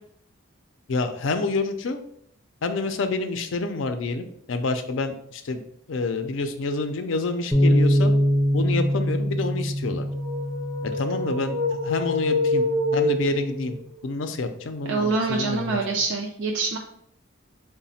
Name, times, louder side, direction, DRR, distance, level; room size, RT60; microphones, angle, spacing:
voice 1, 0.9-2.0 2.6-5.6 5.9-8.1 8.5-10.1 10.8-11.6 11.8-12.7 12.9-13.7 14.0-15.8, left 3 dB, 65° left, 8 dB, 0.4 m, -28 dB
sound 1, 7.5-13.8, equal, 15° left, 0.5 m, -24 dB
Wolf Crying Howl, 10.1-13.7, left 2 dB, 90° right, 0.7 m, -26 dB
voice 2, 14.9-16.8, right 3 dB, 60° right, 0 dB, 0.4 m, -25 dB
4.0 x 2.1 x 4.0 m, 0.69 s
head